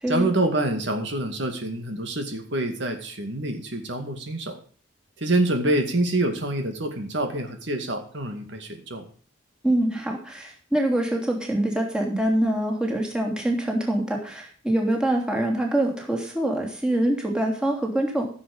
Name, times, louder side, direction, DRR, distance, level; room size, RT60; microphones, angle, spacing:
voice 1, 0.1-4.6 5.2-9.0, right 1 dB, 60° right, 5 dB, 2.2 m, -26 dB
voice 2, 9.6-18.3, right 1 dB, 5° right, 0 dB, 3.0 m, -24 dB
15.5 x 7.5 x 5.4 m, 0.42 s
head